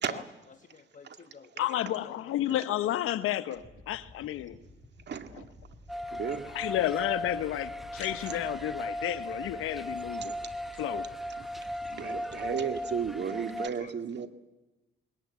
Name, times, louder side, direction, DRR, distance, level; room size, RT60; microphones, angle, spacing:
voice 1, 0.1-2.5 9.9-10.0 11.8-12.0 13.7-13.9, left 6 dB, 35° left, 1.2 m, -50 dB
voice 2, 1.6-4.6 5.3-5.4 6.5-10.3 10.8-11.1, left 13 dB, 85° left, 0.9 m, -31 dB
sound 1, 3.5-13.2, equal, 20° left, 5.0 m, -53 dB
sound 2, 5.9-13.7, left 1 dB, ahead, 1.1 m, -37 dB
voice 3, 6.1-6.5 8.3-8.4 11.9-14.3, right 7 dB, 55° right, 2.0 m, -33 dB
21.0 x 19.5 x 9.4 m
cardioid pair, 90°, 21 cm